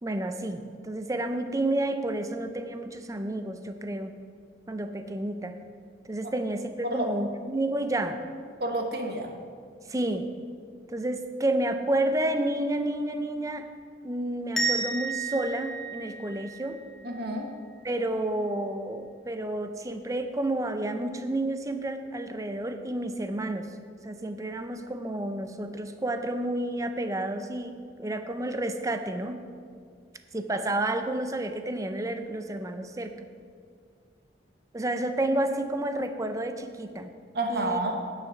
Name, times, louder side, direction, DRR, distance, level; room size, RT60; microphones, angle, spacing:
voice 1, 0.0-4.1 4.7-5.6 6.1-8.2 9.9-10.3 10.9-13.7 14.0-16.8 17.8-23.7 24.0-29.4 30.3-33.1 34.7-37.1 37.5-37.8, right 1 dB, 20° right, 8 dB, 0.5 m, -30 dB
voice 2, 8.6-9.3 17.0-17.5 37.3-38.0, right 2 dB, 55° right, 3 dB, 1.1 m, -29 dB
sound 1, 14.6-17.3, right 4 dB, 5° left, 1.3 m, -32 dB
9.4 x 6.6 x 5.9 m, 2.1 s
head